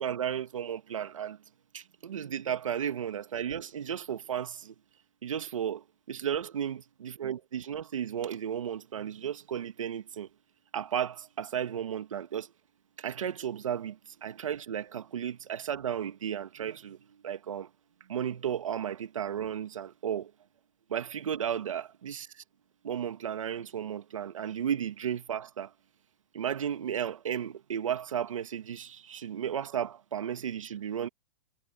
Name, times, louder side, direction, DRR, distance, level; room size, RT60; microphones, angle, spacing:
voice 1, 0.0-1.4 1.7-4.7 5.2-10.3 10.7-12.5 13.0-17.7 18.1-20.3 20.9-22.4 22.8-25.7 26.3-31.1, right 9 dB, 85° right, 2.2 m, -34 dB
hypercardioid pair, 140°, 16 cm